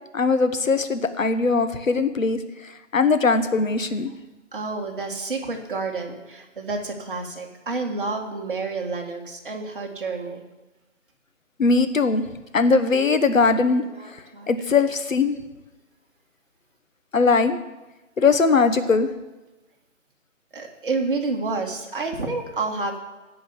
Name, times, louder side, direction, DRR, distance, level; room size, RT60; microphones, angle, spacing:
voice 1, 0.1-4.1 11.6-12.2 12.5-15.3 17.1-17.6 18.2-19.1, left 4 dB, 85° left, 10 dB, 1.2 m, -20 dB
voice 2, 4.5-10.4 13.8-14.5 20.5-23.0, right 3 dB, 40° right, 1 dB, 1.9 m, -29 dB
16.0 x 5.5 x 7.1 m, 1.1 s
figure-of-eight pair, 170°, 39 cm